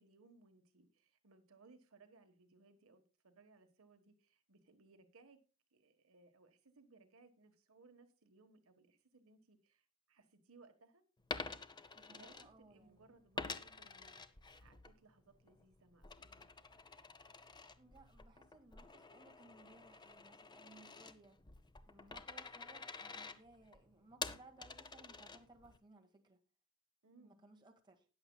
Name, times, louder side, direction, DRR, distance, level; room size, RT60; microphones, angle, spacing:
voice 1, 0.0-5.4 5.7-11.0 12.1-16.5 21.9-22.2 27.0-27.4, right 3 dB, 70° right, 1.3 m, -66 dB
Coin (dropping), 11.2-12.9 13.4-14.9 15.3-25.8, left 4 dB, 20° left, 0.7 m, -49 dB
voice 2, 11.9-13.1 17.8-21.4 21.8-26.4 27.2-28.1, right 2 dB, 20° right, 1.8 m, -63 dB
20.0 x 7.1 x 2.3 m
head